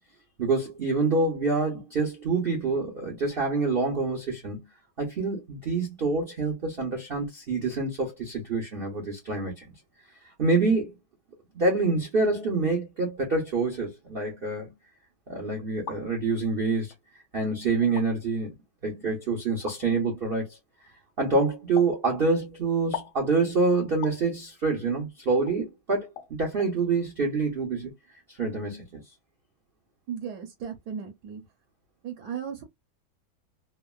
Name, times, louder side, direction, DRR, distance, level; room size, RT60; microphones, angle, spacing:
voice 1, 0.4-4.7 5.0-9.6 10.4-10.9 11.5-14.7 15.3-16.9 17.3-18.5 18.8-20.6 21.2-26.1 26.4-27.9 28.3-29.0, right 3 dB, 80° right, 0.5 m, -26 dB
sound 1, 15.6-16.0 16.9-17.0 17.8-18.1 19.7-19.8 21.8-22.0 22.9-23.2 24.0-24.2 25.5-25.6 26.2-26.3 26.6-26.7, left 9 dB, 80° left, 1.4 m, -37 dB
voice 2, 30.1-31.4 32.0-32.6, right 7 dB, 65° right, 1.0 m, -36 dB
3.4 x 2.1 x 2.2 m
omnidirectional pair, 2.2 m